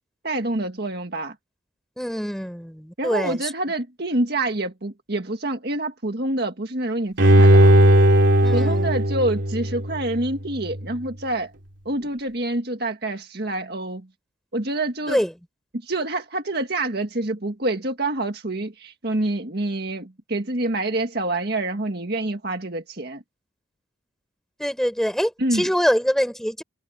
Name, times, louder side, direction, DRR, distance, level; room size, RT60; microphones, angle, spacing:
voice 1, 0.2-1.4 3.0-7.7 8.5-11.5 11.9-14.1 14.5-15.2 15.8-23.2 25.4-25.7, right 2 dB, 50° right, 1.8 m, -27 dB
voice 2, 2.0-3.5 8.4-8.9 15.1-15.3 24.6-26.6, equal, ahead, 7.1 m, -24 dB
Bowed string instrument, 7.2-10.3 10.7-10.8, right 1 dB, 70° right, 2.6 m, -16 dB
head